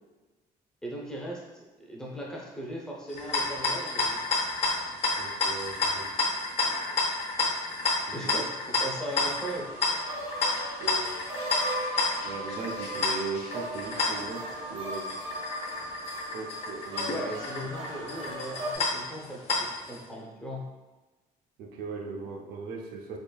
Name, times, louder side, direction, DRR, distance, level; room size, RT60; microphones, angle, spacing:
voice 1, 0.8-4.2 8.1-9.7 17.1-20.7, equal, 5° left, -4 dB, 0.6 m, -38 dB
sound 1, 3.1-20.0, left 3 dB, 45° left, 0.7 m, -31 dB
voice 2, 5.2-6.1 8.1-8.4 10.8-11.1 12.2-15.2 16.3-17.2 17.6-17.7 21.6-23.2, right 4 dB, 85° right, 1 dB, 0.6 m, -38 dB
sound 2, 9.2-18.8, right 1 dB, 40° right, 0.7 m, -37 dB
3.6 x 3.4 x 2.3 m, 1.2 s
cardioid pair, 165°, 16 cm